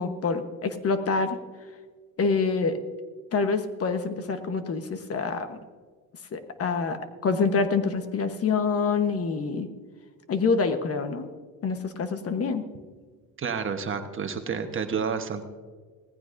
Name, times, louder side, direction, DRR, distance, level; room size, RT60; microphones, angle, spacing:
voice 1, 0.0-1.4 2.2-2.8 3.3-5.6 6.3-9.7 10.3-11.3 11.6-12.6, left 4 dB, 40° left, 8 dB, 1.1 m, -26 dB
voice 2, 13.4-15.4, right 6 dB, 35° right, 6 dB, 1.2 m, -30 dB
18.5 x 15.0 x 2.6 m, 1.5 s
cardioid pair, 100°, 36 cm